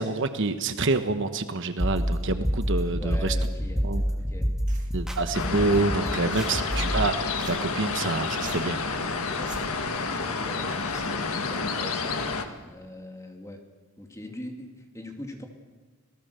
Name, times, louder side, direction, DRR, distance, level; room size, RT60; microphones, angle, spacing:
voice 1, 0.0-3.4 3.8-4.0 4.9-7.2 7.5-8.8, right 3 dB, 55° right, 9 dB, 1.1 m, -27 dB
sound 1, 1.8-7.0, equal, 5° right, 2.3 m, -28 dB
voice 2, 3.0-4.5 9.3-9.7 10.0-13.6 14.0-15.5, left 1 dB, 15° left, 3 dB, 2.5 m, -42 dB
sound 2, 4.7-12.7, right 2 dB, 35° right, 2.2 m, -49 dB
sound 3, 5.3-12.4, left 4 dB, 80° left, 1.7 m, -30 dB
26.0 x 18.0 x 6.9 m, 1.3 s
head